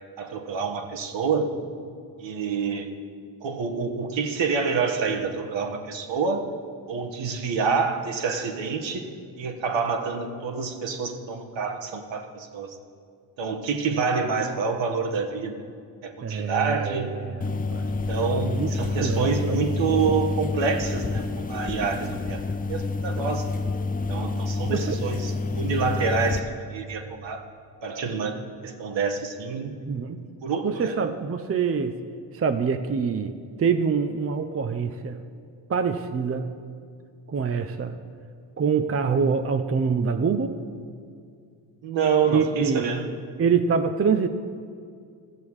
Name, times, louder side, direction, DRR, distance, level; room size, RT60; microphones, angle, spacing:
voice 1, 0.2-1.6 2.2-2.9 3.4-6.4 6.9-9.1 9.4-12.8 13.4-15.5 16.0-17.1 18.1-22.4 22.7-23.5 24.1-27.4 27.8-29.7 30.4-30.9 41.8-43.1, right 5 dB, 60° right, 4 dB, 1.5 m, -27 dB
voice 2, 16.2-17.4 17.7-17.9 18.4-18.7 19.0-19.6 24.7-25.0 29.9-30.2 30.6-32.0 32.3-33.3 33.6-35.2 35.7-36.5 37.3-38.0 38.6-40.6 42.3-43.0 43.4-44.3, right 6 dB, 30° right, 8 dB, 0.6 m, -25 dB
sound 1, 17.4-26.4, left 3 dB, 20° left, 0.5 m, -28 dB
15.0 x 7.0 x 4.8 m, 2.2 s
supercardioid pair, 55°, 49 cm